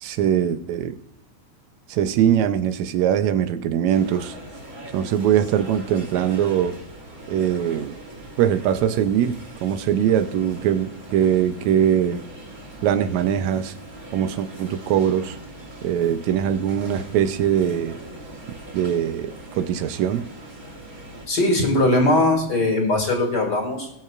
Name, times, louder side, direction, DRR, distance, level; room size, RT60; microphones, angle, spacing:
voice 1, 0.0-1.0 1.9-4.4 4.9-6.8 7.3-8.0 8.4-12.2 12.8-13.7 14.1-15.4 15.8-18.0 18.7-20.2, right 9 dB, 80° right, 11 dB, 1.9 m, -22 dB
sound 1, 3.9-21.3, right 1 dB, 30° right, 3.1 m, -41 dB
voice 2, 21.3-23.9, left 2 dB, 40° left, 3 dB, 2.3 m, -20 dB
21.5 x 7.5 x 2.4 m, 0.82 s
omnidirectional pair, 3.4 m